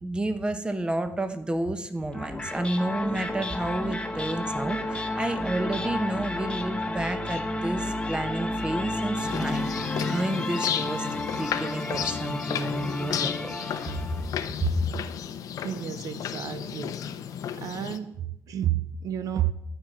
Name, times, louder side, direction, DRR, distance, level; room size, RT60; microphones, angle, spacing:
voice 1, 0.0-11.1 11.4-13.5 13.9-14.0 14.6-14.7, right 1 dB, 15° right, 1.0 m, -30 dB
sound 1, 2.1-14.4, left 1 dB, 15° left, 1.2 m, -32 dB
sound 2, 9.2-18.0, left 9 dB, 85° left, 0.8 m, -33 dB
voice 2, 15.6-17.0 17.5-19.5, right 11 dB, 75° right, 0.6 m, -31 dB
12.0 x 5.8 x 9.3 m
cardioid pair, 135°, 6 cm